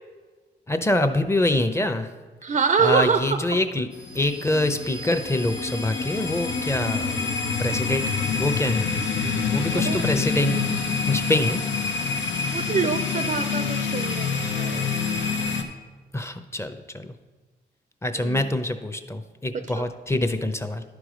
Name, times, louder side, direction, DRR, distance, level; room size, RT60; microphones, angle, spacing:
voice 1, 0.7-2.1 2.8-3.9 4.1-7.3 7.6-8.0 8.3-8.9 9.5-10.7 11.1-11.6 16.1-17.1 18.0-20.8, left 1 dB, 15° left, 9 dB, 0.7 m, -25 dB
voice 2, 2.4-3.6 6.8-7.2 9.8-10.2 12.5-14.9 18.1-18.5 19.5-19.9, right 5 dB, 40° right, 9 dB, 0.4 m, -26 dB
sound 1, 3.9-15.6, left 5 dB, 90° left, 0.8 m, -27 dB
11.0 x 4.7 x 5.1 m, 1.3 s
cardioid pair, 65°, 19 cm